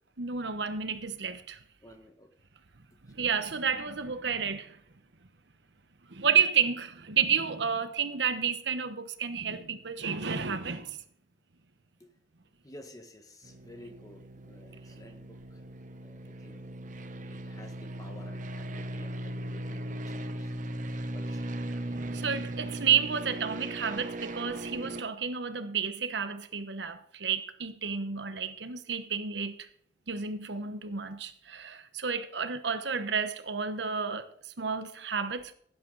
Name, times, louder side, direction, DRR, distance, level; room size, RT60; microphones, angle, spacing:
voice 1, 0.2-1.6 3.1-4.8 6.1-11.0 21.7-29.7 30.1-35.5, right 6 dB, 65° right, 1.1 m, -31 dB
voice 2, 1.8-2.3 12.0-12.1 12.6-15.6 16.0-16.7 17.2-20.5 20.9-21.7, left 1 dB, 20° left, 1.6 m, -52 dB
sound 1, 13.4-25.0, right 1 dB, 45° right, 0.9 m, -38 dB
16.0 x 9.3 x 4.0 m
head